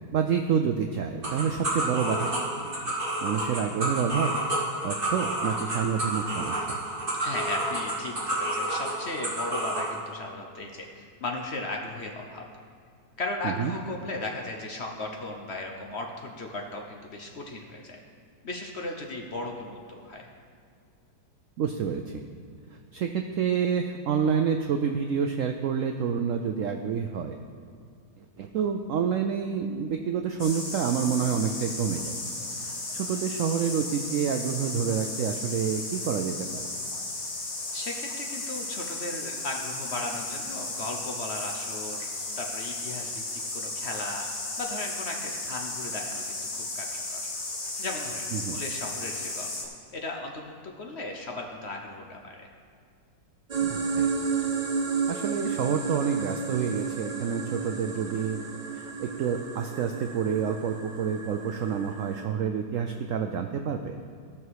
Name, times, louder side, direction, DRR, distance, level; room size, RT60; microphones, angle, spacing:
voice 1, 0.1-2.3 2.8-2.9 3.2-4.3 4.8-6.7 13.4-13.7 21.6-22.0 22.9-27.4 28.4-32.1 32.6-36.7 48.3-48.6 53.6-54.1 55.1-58.4 58.7-64.0, right 7 dB, 90° right, 5 dB, 0.7 m, -28 dB
sound 1, 1.2-9.9, right 1 dB, 30° right, 2.2 m, -30 dB
voice 2, 7.2-12.4 13.2-18.0 18.4-20.3 37.7-42.1 42.4-43.1 43.5-44.3 44.6-47.2 47.8-49.5 49.9-52.5, left 2 dB, 50° left, 1 dB, 0.9 m, -36 dB
sound 2, 30.4-49.6, left 2 dB, 85° left, 2.5 m, -35 dB
sound 3, 53.5-62.2, right 5 dB, 45° right, 0.5 m, -32 dB
15.5 x 6.0 x 4.7 m, 2.2 s
omnidirectional pair, 2.0 m